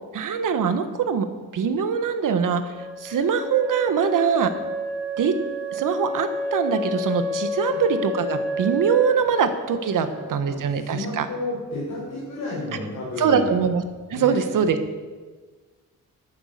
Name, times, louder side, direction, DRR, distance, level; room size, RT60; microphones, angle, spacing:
voice 1, 0.1-1.3 1.5-4.5 5.2-5.3 5.7-11.2 13.2-13.8 14.1-14.8, right 6 dB, 70° right, 9 dB, 1.3 m, -23 dB
Wind instrument woodwind instrument, 2.7-10.4, left 1 dB, 5° right, 2.4 m, -30 dB
voice 2, 10.4-13.6 14.1-14.4, left 2 dB, 65° left, -7 dB, 5.3 m, -32 dB
13.5 x 10.0 x 6.7 m, 1.4 s
wide cardioid pair, 135°, 33 cm